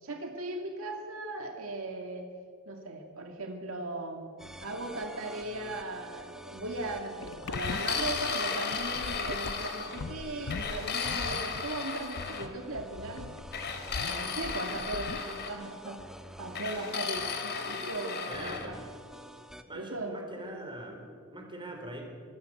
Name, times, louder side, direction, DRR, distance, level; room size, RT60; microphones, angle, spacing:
voice 1, 0.0-2.3 2.7-13.3 13.9-16.0 16.4-18.8 19.7-20.5, right 2 dB, 65° right, 3 dB, 2.2 m, -38 dB
sound 1, 4.4-19.6, equal, ahead, 1.3 m, -48 dB
sound 2, 7.2-15.6, left 4 dB, 75° left, 0.7 m, -42 dB
sound 3, 7.5-10.0 10.5-12.4 13.5-15.6 16.5-18.7, left 6 dB, 50° left, 3.1 m, -35 dB
voice 2, 18.3-18.8 19.6-22.1, right 1 dB, 25° right, 2 dB, 4.8 m, -42 dB
26.0 x 20.0 x 8.0 m, 2.3 s
head